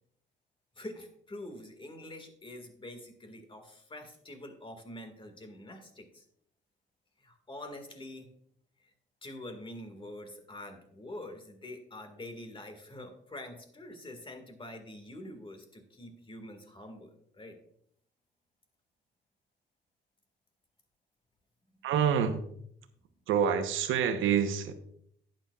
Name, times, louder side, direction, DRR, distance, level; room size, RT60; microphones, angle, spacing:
voice 1, 0.8-6.2 7.2-8.3 8.8-8.9 9.2-17.6, left 1 dB, 25° left, 6 dB, 1.9 m, -46 dB
voice 2, 21.8-22.4 23.3-24.7, right 8 dB, 85° right, 8 dB, 1.0 m, -27 dB
11.5 x 9.1 x 2.4 m, 0.69 s
cardioid pair, 90°, 20 cm